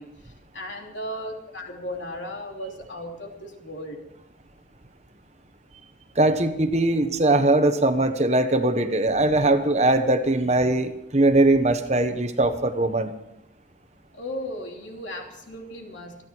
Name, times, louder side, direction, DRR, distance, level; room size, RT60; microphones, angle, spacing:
voice 1, 0.0-4.1 14.1-16.3, equal, 75° left, 2 dB, 3.1 m, -36 dB
voice 2, 6.2-13.1, right 2 dB, 35° right, 8 dB, 1.2 m, -21 dB
27.5 x 10.5 x 4.6 m, 0.81 s
head